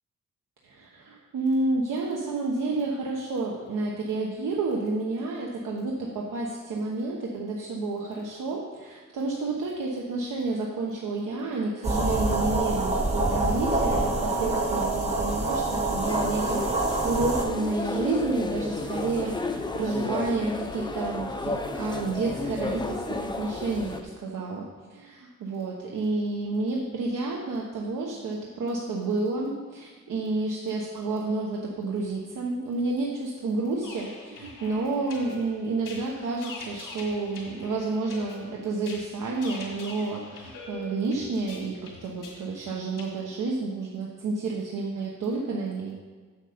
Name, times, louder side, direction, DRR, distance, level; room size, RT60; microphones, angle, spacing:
voice 1, 0.6-16.7 17.0-45.9, right 3 dB, 75° right, -2 dB, 1.1 m, -30 dB
sound 1, 11.8-17.4, right 2 dB, 20° right, 1.0 m, -26 dB
sound 2, 16.0-24.0, left 2 dB, 15° left, 0.6 m, -33 dB
sound 3, 33.8-43.1, left 3 dB, 85° left, 2.2 m, -43 dB
8.4 x 6.9 x 5.1 m, 1.5 s
wide cardioid pair, 165°, 32 cm